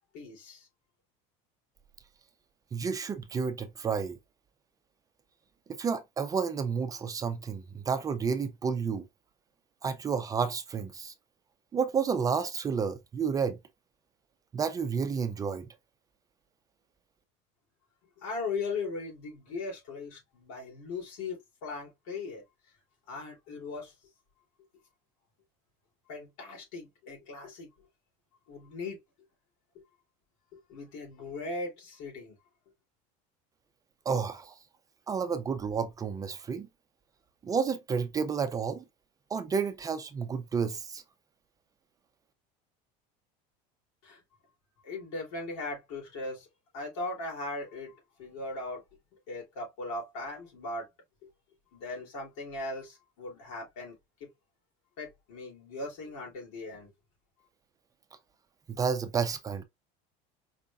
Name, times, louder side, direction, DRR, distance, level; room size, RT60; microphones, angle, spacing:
voice 1, 0.1-0.7 18.2-22.4 23.1-23.9 26.1-27.7 28.5-29.0 30.5-32.4 44.0-44.2 44.8-46.5 46.7-48.8 49.3-50.9 51.7-54.0 55.0-56.9, left 3 dB, 80° left, 3.2 m, -38 dB
voice 2, 2.7-4.2 5.8-9.1 9.8-11.1 11.7-13.6 14.5-15.7 34.1-34.6 35.1-36.7 37.4-38.8 39.3-41.0 58.7-59.6, right 6 dB, 20° right, 0.5 m, -31 dB
4.9 x 3.4 x 2.4 m
cardioid pair, 145°, 17 cm